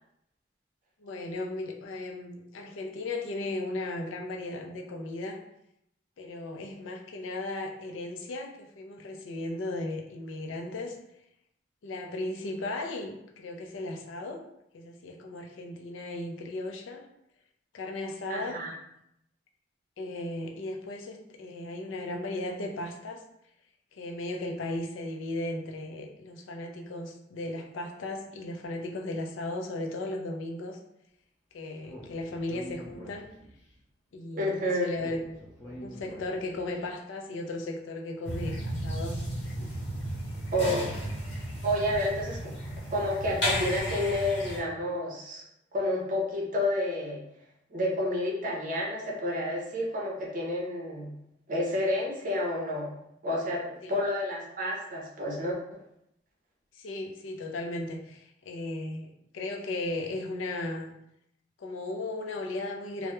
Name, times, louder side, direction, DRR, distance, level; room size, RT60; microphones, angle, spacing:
voice 1, 1.0-5.4 6.2-11.2 11.8-14.4 14.7-17.0 17.7-18.6 20.0-23.2 23.9-30.8 31.5-33.3 34.1-35.4 35.8-39.2 39.5-39.7 53.8-53.9 56.7-61.0 61.6-63.1, left 2 dB, 90° left, 2 dB, 0.4 m, -36 dB
voice 2, 18.3-18.7 34.3-34.9 40.5-40.9 41.6-42.5 42.9-45.4 45.7-47.2 47.7-51.1 51.5-52.9 53.2-55.6, left 1 dB, 45° right, -2 dB, 0.5 m, -30 dB
Speech, 31.8-33.7 35.0-36.7, equal, 20° left, 0.5 m, -45 dB
sound 1, 38.2-44.6, equal, 70° left, 0.9 m, -33 dB
2.2 x 2.0 x 2.9 m, 0.78 s
head